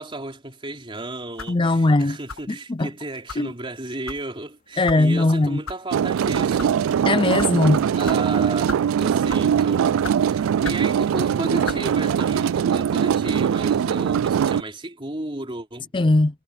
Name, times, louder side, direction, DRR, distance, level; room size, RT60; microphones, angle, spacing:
voice 1, 0.0-6.8 8.0-9.9 10.1-15.9, right 2 dB, 25° right, 3.3 m, -33 dB
sound 1, 1.4-1.6 2.3-2.6 3.3-3.4 4.1-4.2 4.9-5.0 5.6-5.8 6.4-6.7 7.4-7.5 8.1-8.2 8.7-8.9 9.3-9.5 10.0-10.2 10.6-10.9 11.6-11.8, left 4 dB, 85° left, 1.6 m, -34 dB
voice 2, 1.5-2.2 2.7-2.9 3.4-3.5 4.8-5.6 7.1-8.0 15.9-16.3, left 2 dB, 25° left, 0.5 m, -19 dB
sound 2, 4.7-12.5, left 2 dB, 45° left, 5.0 m, -47 dB
sound 3, 5.9-14.6, right 8 dB, 75° right, 0.3 m, -21 dB
head